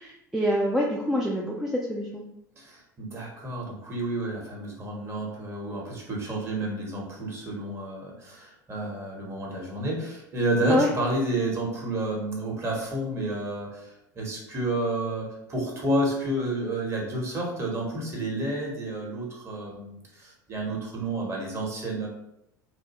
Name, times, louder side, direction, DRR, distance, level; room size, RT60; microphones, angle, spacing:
voice 1, 0.0-2.2 10.7-10.9, equal, 5° right, -4 dB, 0.3 m, -26 dB
voice 2, 2.6-22.1, right 1 dB, 25° right, -2 dB, 1.0 m, -30 dB
2.5 x 2.1 x 2.9 m, 0.80 s
figure-of-eight pair, 70°, 10 cm